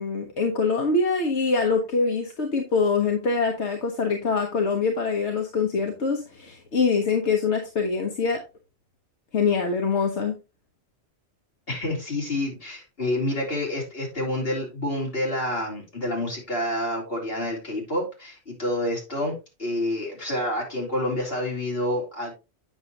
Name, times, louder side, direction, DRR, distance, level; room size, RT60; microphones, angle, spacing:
voice 1, 0.0-8.4 9.3-10.4, left 4 dB, 85° left, 3 dB, 1.4 m, -24 dB
voice 2, 11.7-19.3 19.6-22.3, left 1 dB, 60° left, -2 dB, 3.5 m, -28 dB
8.7 x 6.3 x 2.8 m, 0.27 s
omnidirectional pair, 1.1 m